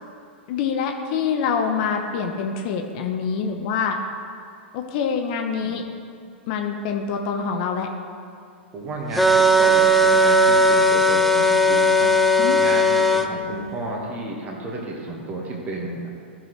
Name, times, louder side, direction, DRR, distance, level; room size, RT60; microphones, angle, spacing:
voice 1, 0.5-4.0 4.7-5.8 6.5-7.9 12.4-12.6, left 6 dB, 45° left, 4 dB, 0.8 m, -25 dB
voice 2, 8.7-16.1, right 2 dB, 25° right, -2 dB, 1.6 m, -32 dB
sound 1, 9.2-13.3, equal, ahead, 0.5 m, -17 dB
15.0 x 6.4 x 3.2 m, 2.3 s
figure-of-eight pair, 100°, 6 cm